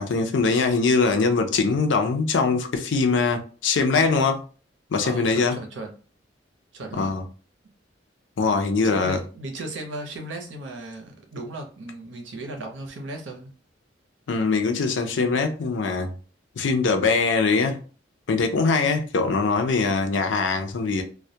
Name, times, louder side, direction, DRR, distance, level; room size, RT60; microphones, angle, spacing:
voice 1, 0.0-4.4 4.9-5.6 7.0-7.2 8.4-9.2 14.3-16.1 16.6-17.8 18.3-21.0, left 4 dB, 75° left, 0.4 m, -22 dB
voice 2, 5.0-5.9 6.7-7.1 8.8-13.5, right 2 dB, 85° right, 0.6 m, -36 dB
2.2 x 2.1 x 2.7 m
head